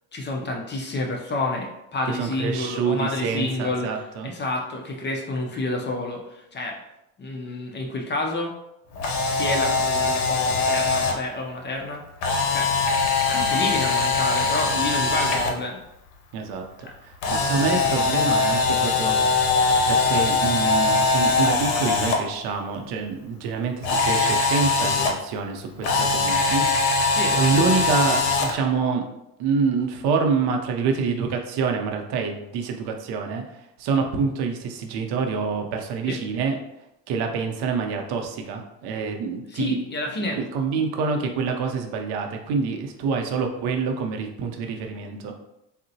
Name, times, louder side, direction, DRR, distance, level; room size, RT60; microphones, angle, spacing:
voice 1, 0.1-6.8 7.2-8.6 9.3-12.1 12.5-12.7 13.3-15.8 16.8-16.9 17.2-17.5 27.1-27.5 36.1-36.2 39.5-40.4 40.7-40.8, left 2 dB, 25° left, 1 dB, 0.5 m, -29 dB
voice 2, 2.2-4.3 16.3-16.9 17.3-19.2 19.9-26.6 27.3-29.0 29.4-36.6 37.1-39.8 40.3-45.3, right 5 dB, 65° right, 4 dB, 0.6 m, -26 dB
Camera, 8.9-11.1 12.2-15.5 17.2-22.2 23.8-25.1 25.8-28.5, left 3 dB, 75° left, 0.7 m, -22 dB
3.7 x 2.1 x 2.7 m, 0.85 s
supercardioid pair, 100°, 42 cm